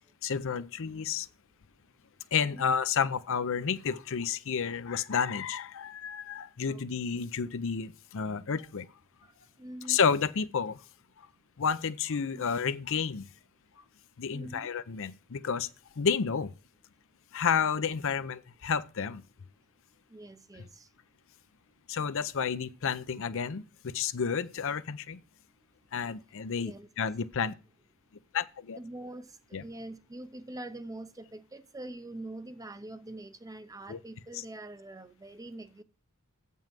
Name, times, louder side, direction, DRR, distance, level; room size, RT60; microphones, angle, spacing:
voice 1, 0.2-1.3 2.3-8.9 9.9-10.9 11.2-11.3 11.6-13.3 14.2-16.5 17.3-19.2 20.6-20.7 21.9-25.2 25.9-27.6 28.3-28.8 29.5-29.6 33.9-34.0 34.3-34.4, left 6 dB, 65° left, 0.6 m, -31 dB
voice 2, 9.6-10.0 12.3-12.5 14.3-14.7 20.1-20.9 26.6-26.9 28.7-35.8, right 1 dB, 15° right, 0.6 m, -44 dB
7.6 x 5.4 x 7.4 m
head